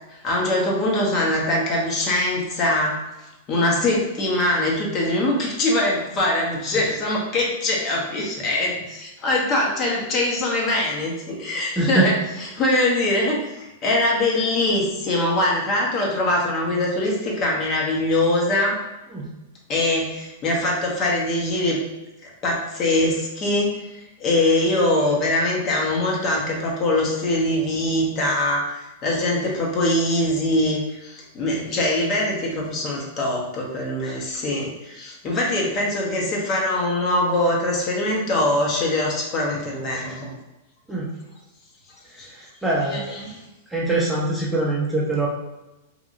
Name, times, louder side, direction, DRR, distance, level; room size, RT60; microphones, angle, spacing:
voice 1, 0.1-3.0 3.5-12.1 12.4-18.8 19.7-21.8 22.2-40.3 42.2-42.3 42.9-43.4, left 1 dB, 35° left, -2 dB, 0.8 m, -23 dB
voice 2, 11.7-12.1 19.1-19.3 34.0-34.2 35.3-35.4 40.9-41.1 42.1-43.1 43.7-45.3, right 2 dB, 5° right, -4 dB, 0.6 m, -24 dB
2.9 x 2.6 x 2.5 m, 1.0 s
hypercardioid pair, 115°, 0 cm